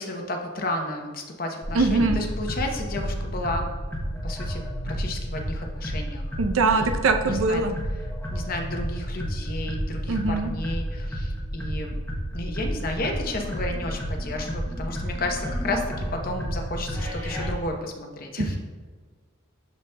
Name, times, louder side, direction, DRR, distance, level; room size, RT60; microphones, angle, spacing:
voice 1, 0.0-3.7 4.2-6.2 6.7-6.9 7.2-7.6 8.3-11.9 12.3-18.6, left 2 dB, 45° left, 3 dB, 0.8 m, -32 dB
sound 1, 1.6-17.5, equal, 10° left, 0.8 m, -31 dB
voice 2, 1.7-2.2 6.4-7.7 10.1-10.5 18.4-18.6, right 3 dB, 75° right, 6 dB, 0.5 m, -22 dB
12.0 x 4.0 x 2.2 m, 1.5 s
head